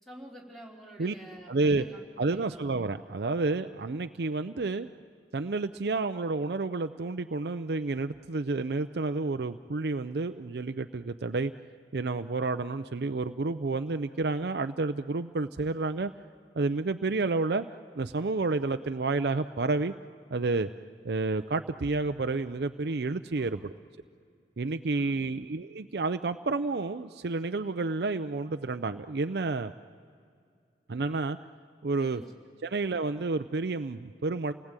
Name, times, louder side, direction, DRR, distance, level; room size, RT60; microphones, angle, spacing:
voice 1, 0.0-2.7 23.3-23.6 24.9-25.5 32.0-32.3, right 1 dB, ahead, -2 dB, 3.5 m, -49 dB
voice 2, 1.5-1.8 2.2-4.9 5.3-11.5 11.9-16.1 16.6-17.6 17.9-19.9 20.3-20.7 21.0-23.7 24.6-29.7 30.9-31.4 31.8-32.2 32.6-34.5, right 3 dB, 65° right, 9 dB, 0.6 m, -30 dB
29.0 x 19.0 x 9.0 m, 2.3 s
head